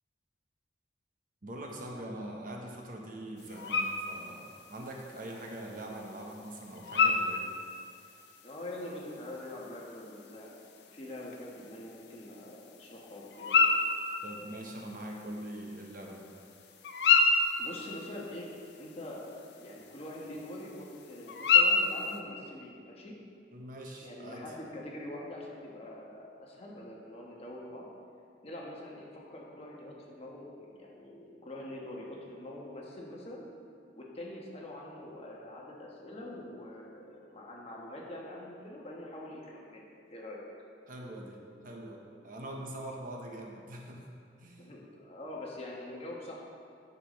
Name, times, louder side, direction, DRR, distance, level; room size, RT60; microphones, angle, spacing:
voice 1, 1.4-7.4 14.2-16.3 23.5-24.5 40.9-44.1 44.4-44.7, right 1 dB, 50° right, 0 dB, 1.0 m, -43 dB
sound 1, 3.4-22.2, left 4 dB, 70° left, 0.6 m, -32 dB
voice 2, 8.4-10.6 10.9-13.7 17.6-18.5 18.8-23.1 24.0-27.9 28.4-33.4 34.0-40.5 44.6-46.4, left 1 dB, 35° left, -3 dB, 1.2 m, -44 dB
10.0 x 6.7 x 3.2 m, 2.4 s
head